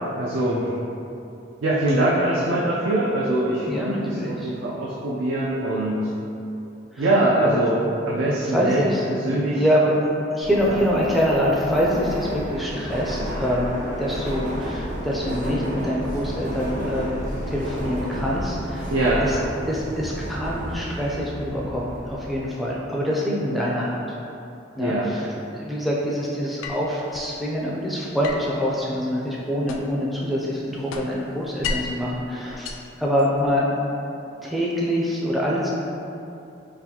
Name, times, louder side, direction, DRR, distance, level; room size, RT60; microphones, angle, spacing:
voice 1, 0.1-0.7 1.6-6.1 7.0-7.8 8.1-8.8 9.1-9.6 10.7-10.8 18.9-19.2 24.8-25.1, right 1 dB, 80° right, -6 dB, 0.4 m, -23 dB
voice 2, 3.7-4.5 6.9-7.1 7.4-7.5 8.4-9.0 9.5-10.1 10.3-17.2 17.5-18.9 19.2-19.4 19.7-24.0 24.7-33.6 34.4-35.7, equal, ahead, -5 dB, 0.4 m, -25 dB
Subway metro underground, 10.4-22.4, equal, 40° right, 0.7 m, -31 dB
sound 1, 26.6-27.3 28.2-30.1 30.4-32.0 32.5-33.6, left 4 dB, 90° left, 0.3 m, -34 dB
4.0 x 2.5 x 2.8 m, 2.8 s
head